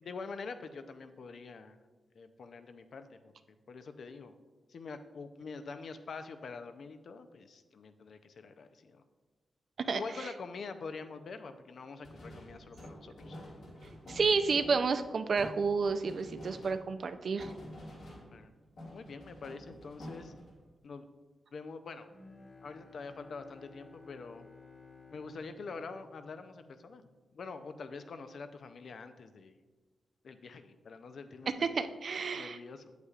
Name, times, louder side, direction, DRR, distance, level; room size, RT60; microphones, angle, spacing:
voice 1, 0.0-1.8 2.1-3.3 3.7-4.3 4.7-9.0 9.9-13.4 18.3-18.5 18.9-20.3 20.8-21.1 21.5-22.1 22.6-24.5 25.1-27.0 27.3-29.5 30.2-31.8 32.3-33.0, left 4 dB, 70° left, 9 dB, 0.5 m, -45 dB
sound 1, 12.0-18.5 18.8-20.6, equal, 85° left, 2.5 m, -49 dB
voice 2, 14.1-17.5 31.6-32.6, right 5 dB, 65° right, 10 dB, 0.4 m, -30 dB
Bowed string instrument, 22.1-27.2, left 4 dB, 40° left, 1.6 m, -56 dB
8.1 x 8.1 x 2.4 m, 1.3 s
cardioid pair, 50°, 0 cm